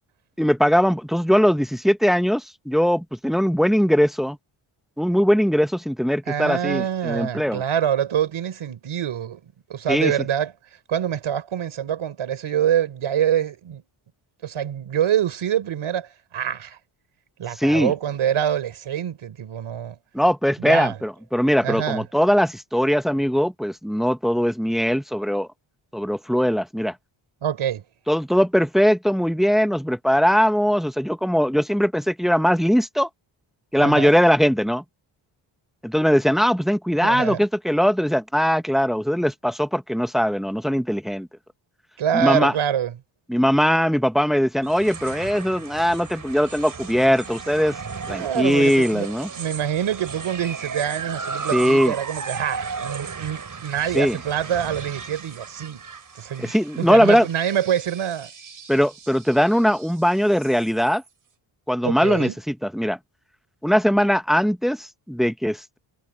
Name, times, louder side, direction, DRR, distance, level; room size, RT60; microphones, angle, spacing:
voice 1, 0.4-4.4 5.0-7.6 9.9-10.1 17.6-17.9 20.1-25.5 25.9-26.9 28.1-33.1 33.7-34.8 35.8-41.3 42.1-42.5 43.3-47.8 48.1-49.3 51.5-51.9 53.9-54.2 56.4-57.3 58.7-61.0 61.7-63.0 63.6-65.8, equal, ahead, 0.9 m, -20 dB
voice 2, 6.3-10.5 10.9-13.8 14.4-16.8 17.4-20.0 20.6-21.0 21.6-22.0 27.4-27.8 33.8-34.1 37.0-37.4 42.0-42.9 48.1-49.1 49.4-55.9 56.2-58.3 61.8-62.4, right 9 dB, 75° right, 3.9 m, -25 dB
sound 1, 44.6-61.1, right 5 dB, 40° right, 6.8 m, -35 dB
wide cardioid pair, 130°, 48 cm